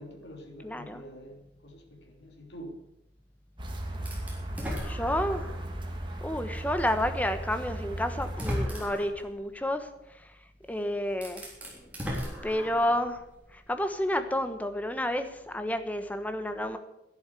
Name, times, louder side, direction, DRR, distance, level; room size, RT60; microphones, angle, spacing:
voice 1, 0.0-2.8, equal, 80° left, 3 dB, 3.1 m, -46 dB
voice 2, 0.6-1.0 4.8-5.5 6.2-9.9 10.7-11.4 12.4-13.2 13.5-16.8, left 1 dB, 10° left, 8 dB, 1.1 m, -30 dB
sound 1, 3.6-8.7, right 1 dB, 25° right, 1.8 m, -36 dB
sound 2, 4.1-5.7 6.2-6.3 7.5-7.6 8.2-9.2 10.6-10.7 11.1-13.1, equal, 10° right, 3.5 m, -36 dB
11.5 x 11.0 x 8.2 m, 0.89 s
head